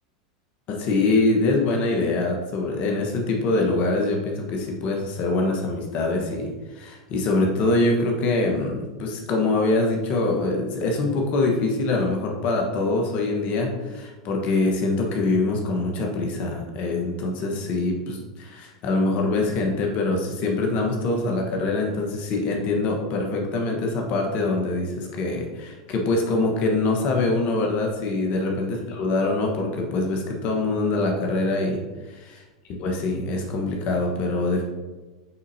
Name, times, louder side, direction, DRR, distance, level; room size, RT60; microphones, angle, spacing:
voice 1, 0.7-31.8 32.1-32.4 32.8-34.6, left 2 dB, 50° left, 1 dB, 1.2 m, -24 dB
8.4 x 4.0 x 2.8 m, 1.2 s
hypercardioid pair, 100°, 3 cm